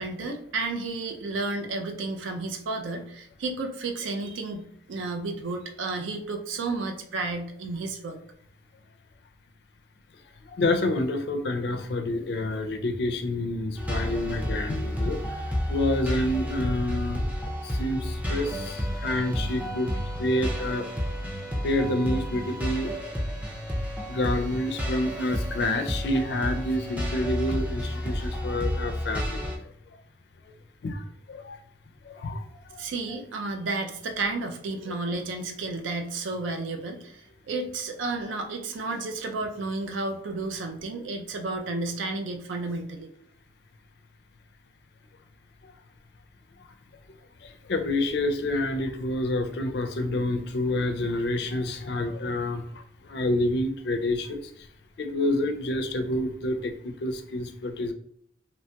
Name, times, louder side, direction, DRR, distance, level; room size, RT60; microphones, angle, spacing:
voice 1, 0.0-8.2 32.8-43.1, right 3 dB, 80° right, 4 dB, 0.4 m, -32 dB
voice 2, 10.6-15.2 15.7-17.2 17.8-19.9 20.2-20.9 21.6-22.9 24.1-29.4 30.8-31.6 32.1-32.4 32.7-32.8 34.9-35.0 47.7-52.6 53.0-54.4 55.0-57.9, left 1 dB, 55° left, 7 dB, 0.4 m, -28 dB
sound 1, 13.8-29.6, equal, 5° right, 0.4 m, -31 dB
2.9 x 2.8 x 2.2 m, 0.70 s
head